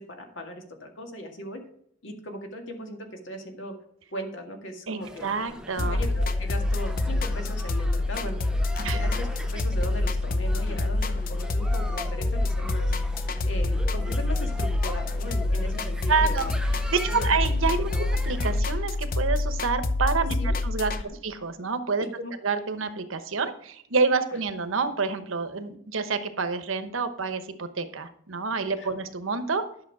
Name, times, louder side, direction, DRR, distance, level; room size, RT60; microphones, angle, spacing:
voice 1, 0.0-1.6 2.0-3.7 4.1-5.4 5.9-12.9 13.4-16.5 17.1-17.3 17.9-18.1 20.2-20.6 21.0-21.2 22.2-22.3 28.8-28.9, equal, 70° left, 3 dB, 2.0 m, -38 dB
voice 2, 4.9-6.0 8.8-9.0 16.1-16.5 16.9-17.9 18.2-20.9 21.2-22.1 22.4-29.6, right 4 dB, 85° right, 10 dB, 1.0 m, -28 dB
sound 1, 5.0-18.6, equal, 5° right, 0.5 m, -41 dB
sound 2, 5.8-21.0, left 2 dB, 45° left, 0.6 m, -26 dB
11.0 x 6.5 x 4.8 m, 0.67 s
head